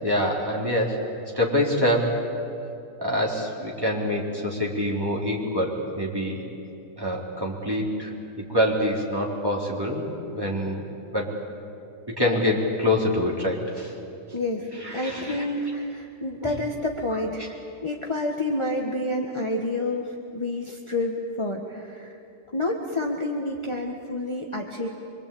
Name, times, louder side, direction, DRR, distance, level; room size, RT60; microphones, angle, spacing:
voice 1, 0.0-1.0 1.4-2.2 3.0-6.5 7.0-8.1 8.5-10.1 10.3-10.8 11.1-11.3 12.2-13.9 14.8-15.4, left 1 dB, 15° right, -2 dB, 3.8 m, -25 dB
voice 2, 14.3-14.6 14.9-17.5 17.8-22.2 22.5-24.9, left 1 dB, 20° left, 0 dB, 1.6 m, -29 dB
25.5 x 24.5 x 8.6 m, 2.7 s
omnidirectional pair, 1.4 m